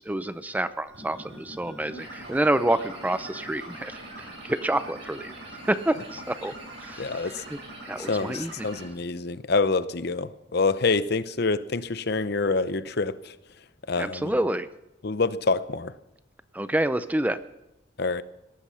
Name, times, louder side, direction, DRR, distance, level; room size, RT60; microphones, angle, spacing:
voice 1, 0.0-5.3 5.7-6.5 6.8-7.6 7.9-8.7 14.0-14.7 16.5-17.4, right 1 dB, 10° right, 0.5 m, -28 dB
sound 1, 0.9-8.8, right 1 dB, 60° right, 7.8 m, -42 dB
voice 2, 7.0-7.4 8.0-13.3 13.9-14.3 15.0-15.9 18.0-18.2, left 3 dB, 55° left, 0.7 m, -26 dB
18.0 x 13.0 x 5.7 m
head